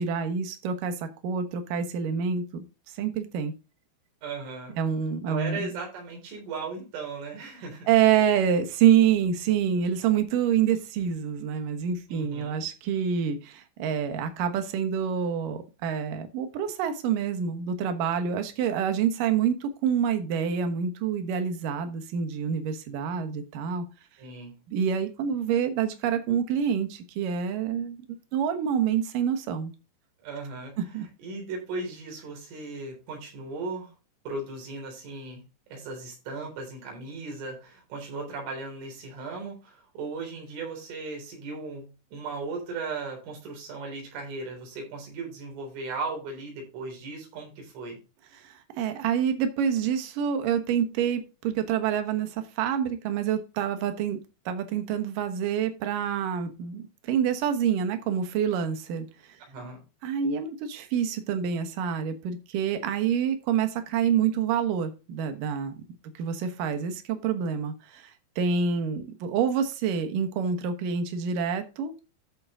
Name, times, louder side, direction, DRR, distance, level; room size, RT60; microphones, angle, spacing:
voice 1, 0.0-2.6 2.9-3.5 4.7-5.7 7.9-23.9 24.7-29.7 30.9-31.0 48.4-54.2 54.5-59.1 60.0-65.7 66.2-71.9, right 8 dB, 70° right, 7 dB, 2.1 m, -27 dB
voice 2, 4.2-4.8 5.3-7.9 12.1-12.7 24.2-24.5 30.2-30.8 31.2-33.9 34.3-35.4 35.7-48.0 59.5-59.8, right 3 dB, 90° right, 1 dB, 6.3 m, -37 dB
13.5 x 4.7 x 3.7 m, 0.30 s
omnidirectional pair, 5.4 m